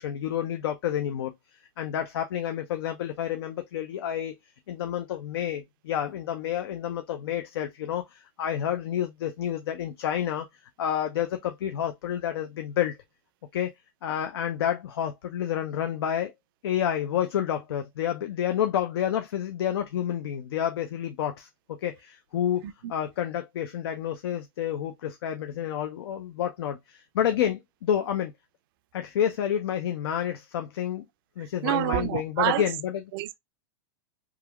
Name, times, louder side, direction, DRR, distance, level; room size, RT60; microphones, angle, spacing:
voice 1, 0.0-1.3 1.8-4.4 4.7-10.5 10.8-13.0 13.5-13.7 14.0-16.3 16.6-22.6 22.9-28.3 28.9-31.0 31.4-33.0, left 10 dB, 80° left, 0.4 m, -29 dB
voice 2, 31.4-32.6 33.1-33.4, right 14 dB, 60° right, 0.4 m, -27 dB
3.1 x 2.3 x 2.2 m
hypercardioid pair, 115°, 13 cm